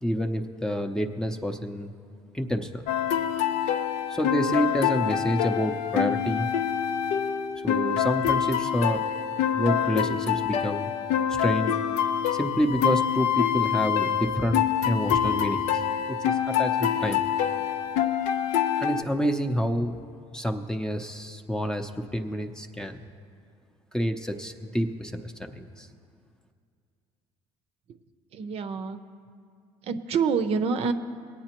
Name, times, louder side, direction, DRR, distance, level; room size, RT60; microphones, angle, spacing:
voice 1, 0.0-1.9 2.3-2.8 4.1-6.5 7.6-9.0 9.5-10.9 11.4-11.8 12.3-15.8 16.1-17.2 18.8-20.0 20.3-23.0 23.9-25.9, equal, 5° left, 4 dB, 0.6 m, -28 dB
sound 1, 2.9-19.0, left 9 dB, 80° left, 0.5 m, -26 dB
voice 2, 28.3-29.0 29.8-30.9, right 5 dB, 55° right, 8 dB, 0.6 m, -26 dB
19.0 x 8.7 x 3.0 m, 2.3 s
cardioid pair, 105°, 12 cm